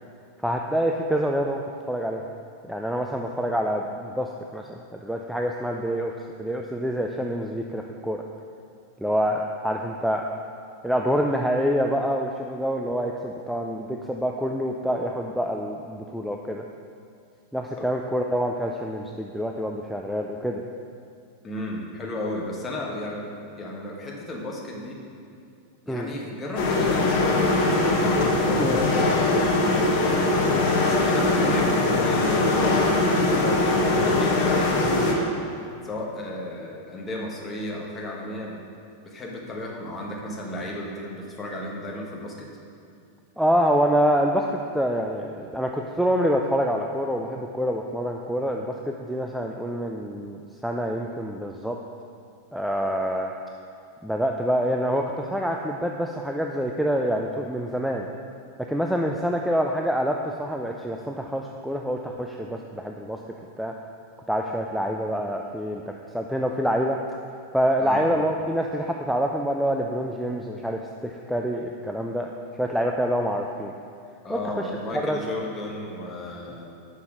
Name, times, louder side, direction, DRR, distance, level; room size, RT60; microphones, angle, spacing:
voice 1, 0.4-1.6 1.9-2.2 2.6-8.2 9.0-10.2 10.8-16.6 17.5-20.6 25.9-26.1 28.6-28.8 43.4-51.8 52.5-53.3 54.0-58.1 58.7-63.2 63.6-63.7 64.3-67.0 67.5-72.3 72.5-73.7 74.3-74.6 75.1-75.2, equal, ahead, 1 dB, 0.4 m, -26 dB
voice 2, 21.4-23.3 23.6-25.0 25.9-27.6 28.3-30.3 30.7-35.3 35.8-38.6 39.0-42.5 67.8-68.1 74.2-76.6, left 1 dB, 20° left, -2 dB, 1.3 m, -33 dB
sound 1, 26.6-35.1, left 2 dB, 45° left, 0.9 m, -21 dB
5.8 x 5.8 x 4.9 m, 2.4 s
figure-of-eight pair, 90°, 0 cm